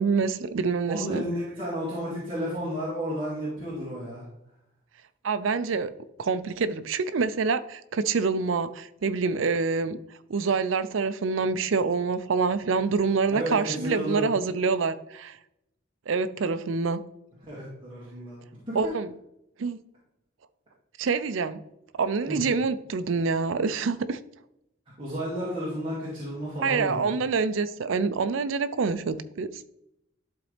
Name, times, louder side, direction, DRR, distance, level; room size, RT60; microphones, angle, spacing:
voice 1, 0.0-1.2 5.2-5.9 6.2-10.0 10.3-15.4 16.1-17.0 18.7-19.1 19.6-19.8 21.0-21.6 22.0-24.2 26.6-29.6, right 4 dB, 80° right, 12 dB, 0.5 m, -26 dB
voice 2, 0.9-4.2 13.3-14.3 17.4-18.8 22.3-22.4 25.0-27.1, equal, 25° right, -8 dB, 2.0 m, -32 dB
11.5 x 4.0 x 3.3 m, 0.83 s
head